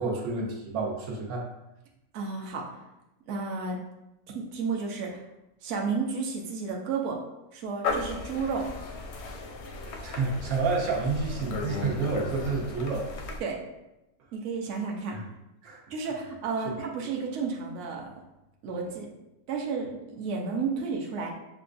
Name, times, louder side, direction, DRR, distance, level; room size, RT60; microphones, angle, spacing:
voice 1, 0.0-1.5 10.0-13.1 15.1-15.2 15.6-15.8 16.6-16.8, right 4 dB, 80° right, -1 dB, 1.2 m, -29 dB
voice 2, 2.1-2.8 3.3-3.8 4.3-5.2 5.6-7.2 7.5-8.7 13.4-13.6 14.3-15.2 15.9-18.1 18.6-19.1 19.5-21.3, right 4 dB, 65° right, 0 dB, 0.9 m, -32 dB
sound 1, 7.8-13.4, left 3 dB, 65° left, 0.7 m, -35 dB
6.7 x 2.3 x 2.5 m, 0.92 s
omnidirectional pair, 1.5 m